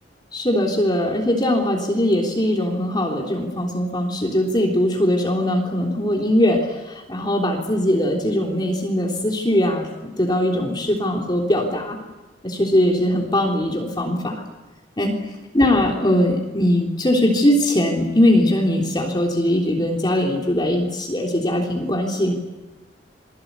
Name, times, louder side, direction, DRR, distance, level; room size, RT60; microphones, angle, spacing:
voice 1, 0.3-12.0 12.4-14.4 15.0-15.1 15.5-22.3, left 1 dB, 25° left, 0 dB, 3.4 m, -20 dB
28.5 x 21.5 x 8.3 m, 1.1 s
head